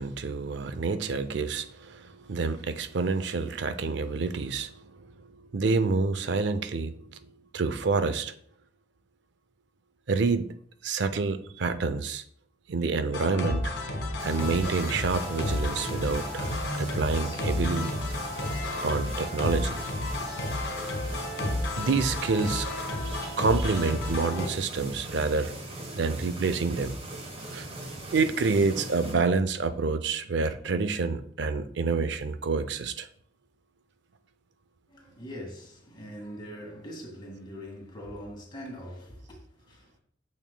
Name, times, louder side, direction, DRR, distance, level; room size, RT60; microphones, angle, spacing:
voice 1, 0.0-5.1 5.5-7.0 7.5-8.3 10.1-10.5 10.8-12.2 12.7-13.7 14.2-17.9 18.8-19.8 21.8-22.7 23.0-25.5 25.9-27.0 27.5-27.7 28.1-33.1, right 4 dB, 65° right, 0.5 m, -28 dB
sound 1, 13.1-24.5, left 1 dB, 70° left, 1.5 m, -31 dB
sound 2, 14.2-29.1, right 1 dB, 30° right, 1.1 m, -40 dB
voice 2, 34.9-40.0, equal, 25° left, 1.9 m, -42 dB
8.9 x 6.4 x 2.2 m
head